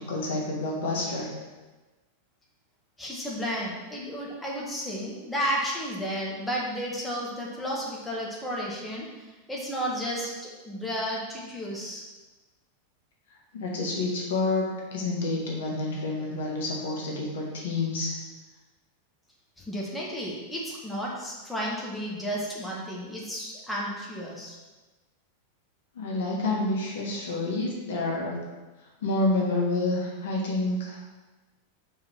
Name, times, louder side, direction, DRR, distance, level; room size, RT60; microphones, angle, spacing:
voice 1, 0.0-1.3 13.5-14.6 14.9-18.1 26.0-28.4 29.0-31.0, left 2 dB, 60° left, -3 dB, 1.8 m, -28 dB
voice 2, 3.0-9.1 9.5-12.0 19.6-24.5, equal, 5° left, -4 dB, 1.6 m, -32 dB
5.7 x 4.7 x 6.0 m, 1.2 s
figure-of-eight pair, 90°, 0 cm